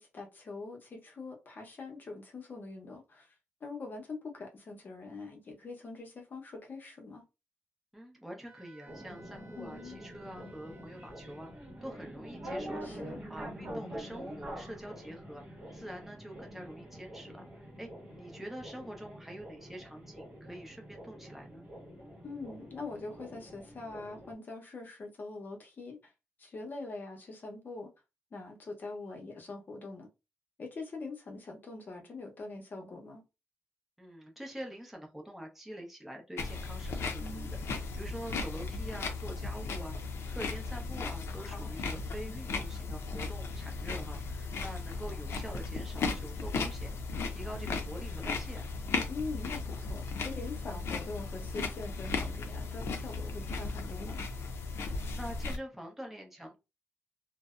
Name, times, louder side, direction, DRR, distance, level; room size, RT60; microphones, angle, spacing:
voice 1, 0.0-3.3 3.6-7.2 9.6-10.0 12.8-13.2 22.2-26.1 26.4-27.9 28.3-30.1 30.6-33.2 37.2-37.5 41.4-41.8 49.1-54.2, left 3 dB, 45° left, 0.7 m, -43 dB
voice 2, 7.9-17.9 18.2-21.6 34.0-37.5 37.7-48.7 55.2-56.6, equal, 5° right, 0.6 m, -45 dB
Wind instrument woodwind instrument, 8.5-11.9, right 2 dB, 90° right, 0.6 m, -58 dB
sound 1, 8.9-24.3, equal, 35° right, 0.9 m, -46 dB
sound 2, 36.4-55.6, left 4 dB, 70° left, 0.5 m, -36 dB
2.6 x 2.0 x 2.3 m
wide cardioid pair, 145°, 4 cm